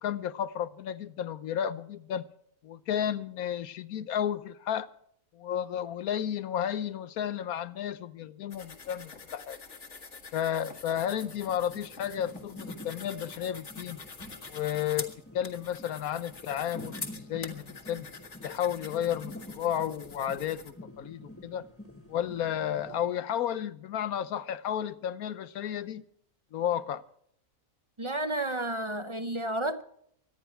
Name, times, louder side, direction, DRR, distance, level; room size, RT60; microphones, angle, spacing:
voice 1, 0.0-2.2 2.6-4.9 5.3-9.6 10.3-14.0 14.5-18.1 18.4-21.6 22.1-26.0 26.5-27.0, left 10 dB, 90° left, 1.3 m, -32 dB
sound 1, 8.5-20.7, left 4 dB, 55° left, 1.9 m, -45 dB
sound 2, 10.9-23.0, left 1 dB, 10° left, 1.7 m, -48 dB
voice 2, 28.0-29.8, right 1 dB, 30° right, 0.5 m, -31 dB
24.5 x 10.0 x 4.5 m
omnidirectional pair, 1.5 m